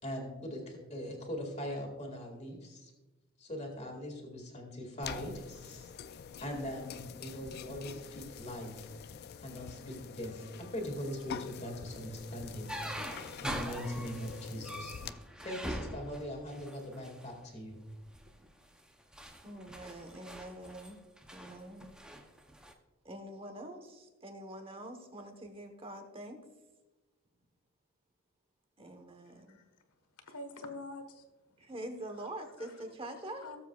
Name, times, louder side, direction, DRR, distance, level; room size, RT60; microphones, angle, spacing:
voice 1, 0.0-2.9 3.4-5.9 6.4-8.9 9.4-10.5 10.7-12.7 13.4-14.9 15.4-17.8, equal, 30° left, 1 dB, 2.1 m, -41 dB
sound 1, 5.0-15.1, left 7 dB, 45° left, 0.3 m, -46 dB
sound 2, 12.7-17.3 18.0-18.3 18.8-22.7, equal, 5° right, 0.7 m, -43 dB
voice 2, 19.4-21.0 21.3-22.0 23.0-26.4 28.8-29.6 31.6-33.4, right 1 dB, 25° right, 6 dB, 1.1 m, -45 dB
voice 3, 29.2-29.7 30.1-31.4 32.2-32.9 33.4-33.6, left 2 dB, 85° left, 7 dB, 1.4 m, -47 dB
18.5 x 7.3 x 2.4 m, 1.1 s
head